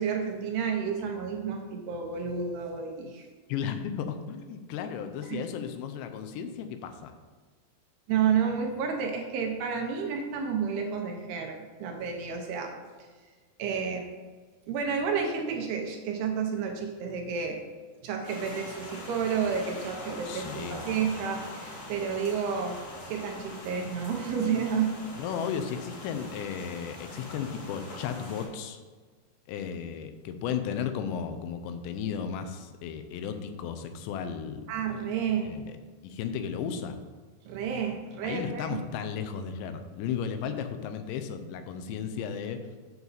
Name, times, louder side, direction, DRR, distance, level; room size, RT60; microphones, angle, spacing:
voice 1, 0.0-3.3 5.3-5.4 8.1-12.7 13.6-14.0 14.7-17.6 18.0-22.8 23.1-24.9 34.7-35.5 37.5-38.8, right 6 dB, 75° right, 2 dB, 2.8 m, -30 dB
voice 2, 3.5-7.1 20.3-20.8 25.2-28.8 29.5-34.6 35.4-35.7 36.0-37.0 38.2-42.6, left 7 dB, 85° left, 8 dB, 3.0 m, -34 dB
sound 1, 18.2-28.5, left 1 dB, 45° left, 2.1 m, -43 dB
7.9 x 7.1 x 4.1 m, 1.5 s
omnidirectional pair, 5.0 m